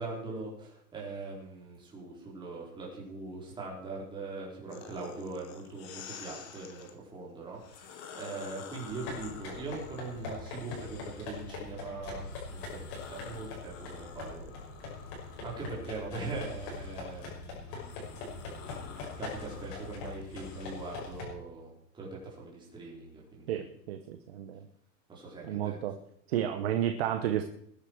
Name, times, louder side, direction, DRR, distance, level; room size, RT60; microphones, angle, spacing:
voice 1, 0.0-12.8 13.1-14.4 15.4-23.6 25.1-25.8, right 3 dB, 10° right, -3 dB, 4.0 m, -41 dB
sound 1, 4.7-6.9 7.5-11.6 12.1-21.2, left 7 dB, 15° left, 0.6 m, -50 dB
sound 2, 8.9-21.3, left 3 dB, 35° left, 5.7 m, -43 dB
sound 3, 14.5-20.9, left 5 dB, 50° left, 5.2 m, -52 dB
voice 2, 23.5-24.6 25.4-26.0 26.3-27.4, right 11 dB, 40° right, 7 dB, 1.0 m, -32 dB
20.0 x 10.5 x 4.6 m, 0.69 s
supercardioid pair, 175°, 49 cm